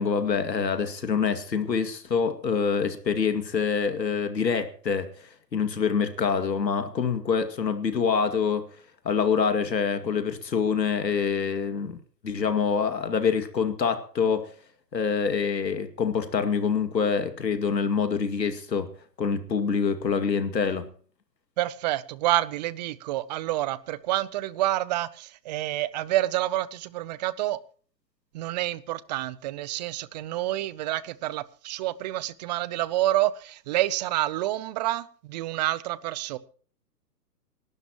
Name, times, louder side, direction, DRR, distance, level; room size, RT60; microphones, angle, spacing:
voice 1, 0.0-8.7 9.0-12.0 12.2-14.5 14.9-18.9 19.2-20.9, left 6 dB, 80° left, 2.4 m, -26 dB
voice 2, 21.6-27.6 28.3-36.4, right 15 dB, 25° right, 0.7 m, -28 dB
28.0 x 12.0 x 3.1 m
figure-of-eight pair, 125°, 50 cm